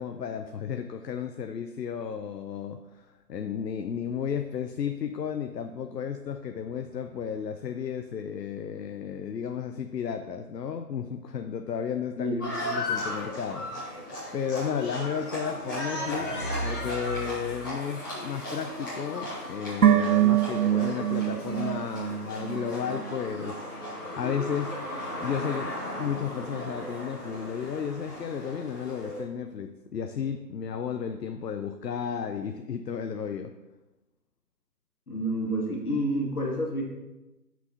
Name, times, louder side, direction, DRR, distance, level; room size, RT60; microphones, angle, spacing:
voice 1, 0.0-16.4 16.6-24.8 25.2-33.6, left 7 dB, 85° left, 7 dB, 0.6 m, -33 dB
voice 2, 12.2-12.5 35.1-36.8, equal, 65° left, -1 dB, 2.0 m, -29 dB
Livestock farm animals working animals, 12.4-29.2, left 1 dB, 10° left, 1.4 m, -36 dB
sound 1, 15.5-17.8, right 1 dB, 35° left, 0.9 m, -37 dB
sound 2, 19.8-23.1 23.4-23.5, right 11 dB, 65° right, 0.6 m, -24 dB
8.1 x 6.1 x 2.8 m, 1.1 s
figure-of-eight pair, 165°, 48 cm